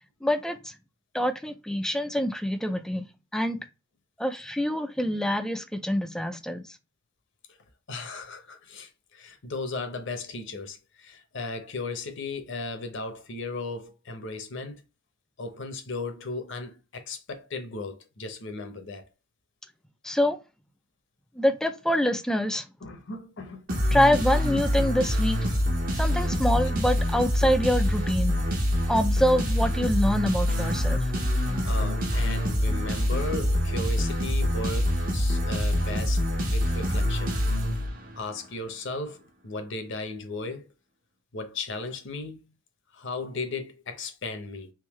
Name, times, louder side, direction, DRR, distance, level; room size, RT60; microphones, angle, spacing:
voice 1, 0.2-0.7 1.1-3.0 3.3-3.6 4.2-6.6 20.0-20.4 21.4-22.6 23.9-25.4 26.0-28.3 28.9-31.1, equal, 5° left, 0.3 m, -25 dB
voice 2, 7.9-14.8 15.4-19.0 22.8-23.8 31.6-37.4 38.2-40.7 41.3-42.5 42.9-44.7, left 3 dB, 60° left, 0.8 m, -36 dB
sound 1, 23.7-38.3, equal, 45° right, 1.0 m, -25 dB
3.6 x 2.6 x 3.0 m
head